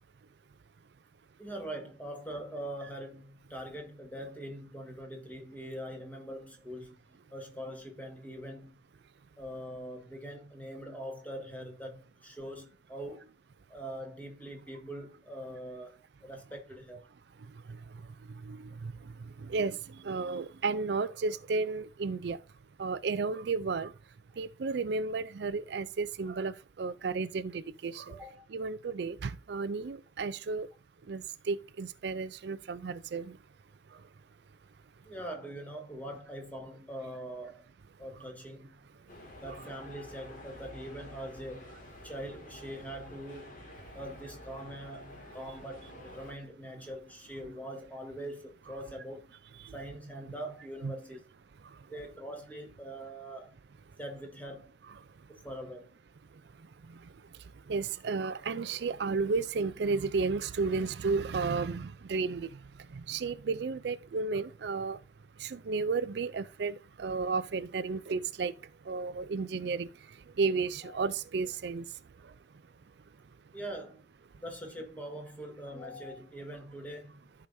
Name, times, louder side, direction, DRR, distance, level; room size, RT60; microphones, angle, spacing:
voice 1, 1.4-7.0 7.3-8.8 9.4-13.3 13.7-17.0 28.2-28.5 35.0-37.6 38.0-38.8 39.4-41.7 42.0-43.6 43.9-49.3 49.7-51.2 51.9-53.5 54.0-54.7 55.3-55.9 70.8-71.1 73.5-74.0 74.4-77.2, right 1 dB, 10° left, 1.7 m, -43 dB
voice 2, 20.0-22.4 22.8-23.9 24.4-28.1 28.5-30.7 31.1-33.3 50.8-50.9 57.7-62.5 63.1-65.0 65.4-68.5 68.9-69.9 70.4-71.8, right 4 dB, 65° right, 0.4 m, -32 dB
sound 1, 39.1-46.3, left 1 dB, 45° left, 2.2 m, -49 dB
14.5 x 5.0 x 2.7 m
head